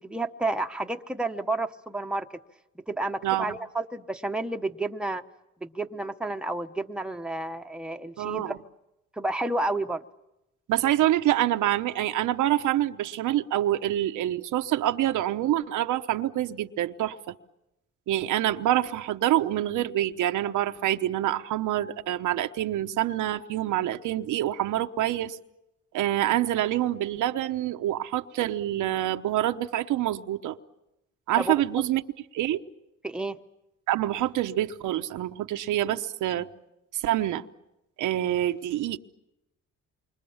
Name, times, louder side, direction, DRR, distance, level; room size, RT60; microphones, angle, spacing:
voice 1, 0.0-2.3 2.9-5.2 5.6-8.5 9.2-10.0 31.4-31.6 33.0-33.4, right 2 dB, 5° right, 5 dB, 1.1 m, -30 dB
voice 2, 3.2-3.5 8.2-8.6 10.7-17.3 18.1-25.4 25.9-30.6 31.3-32.0 32.3-32.6 33.9-36.5 36.9-37.4 38.0-39.0, right 13 dB, 85° right, 7 dB, 1.0 m, -26 dB
28.5 x 25.0 x 7.2 m, 0.90 s
cardioid pair, 90°, 30 cm